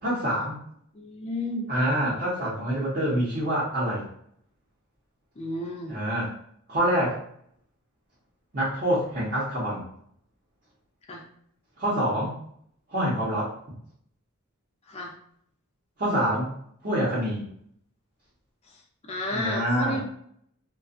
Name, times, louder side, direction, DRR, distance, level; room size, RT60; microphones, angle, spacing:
voice 1, 0.0-0.6 1.7-4.1 5.9-6.3 6.7-7.2 8.5-9.9 11.8-12.3 12.9-13.5 16.0-16.5 16.8-17.5 19.3-20.0, equal, 40° right, -9 dB, 0.8 m, -26 dB
voice 2, 0.9-1.7 5.4-6.0 11.1-11.2 14.9-15.1 18.7-20.0, left 1 dB, 30° left, 0 dB, 0.4 m, -32 dB
2.4 x 2.3 x 2.5 m, 0.66 s
head